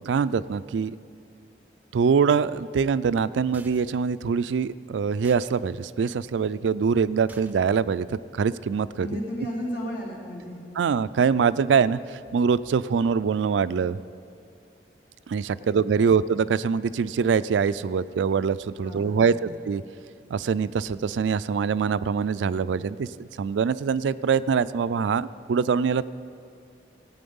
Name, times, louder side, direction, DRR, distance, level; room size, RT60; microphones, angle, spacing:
voice 1, 0.0-1.0 1.9-9.2 10.8-14.0 15.3-19.8 20.3-26.1, right 6 dB, 85° right, 16 dB, 0.3 m, -24 dB
sound 1, 3.5-4.0 5.2-5.6 7.3-7.8, right 2 dB, 10° right, 0.5 m, -48 dB
voice 2, 9.0-10.6 15.6-16.2 18.8-19.5, equal, 65° left, -4 dB, 3.1 m, -35 dB
17.0 x 8.6 x 5.4 m, 2.3 s
head